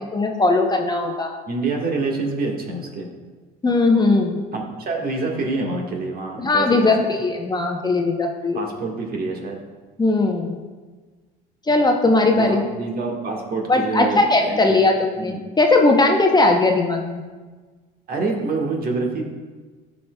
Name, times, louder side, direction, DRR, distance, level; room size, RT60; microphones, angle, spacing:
voice 1, 0.1-1.3 3.6-4.4 6.4-8.6 10.0-10.6 11.7-12.6 13.7-17.2, left 2 dB, 20° left, 2 dB, 0.8 m, -18 dB
voice 2, 1.5-3.1 4.5-6.9 8.5-9.6 12.3-14.8 15.2-15.4 18.1-19.2, right 3 dB, 50° right, 1 dB, 1.5 m, -26 dB
12.0 x 5.2 x 2.3 m, 1.3 s
supercardioid pair, 80°, 20 cm